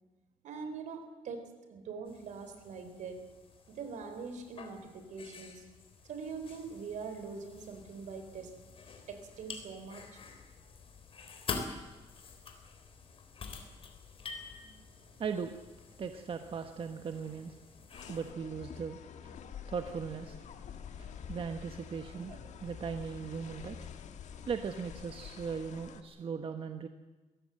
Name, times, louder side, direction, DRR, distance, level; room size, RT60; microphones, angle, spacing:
voice 1, 0.4-3.3 3.7-5.7 6.1-8.6 9.1-10.2, right 5 dB, 75° right, 8 dB, 4.1 m, -43 dB
sound 1, 2.1-18.3, left 5 dB, 45° left, 3.7 m, -47 dB
voice 2, 15.2-15.6 16.0-17.6 18.1-20.5 21.0-23.9 24.3-26.9, right 6 dB, 45° right, 7 dB, 1.4 m, -39 dB
sound 2, 17.9-26.0, left 8 dB, 70° left, 1.7 m, -47 dB
22.5 x 17.5 x 7.8 m, 1.2 s
cardioid pair, 115°, 13 cm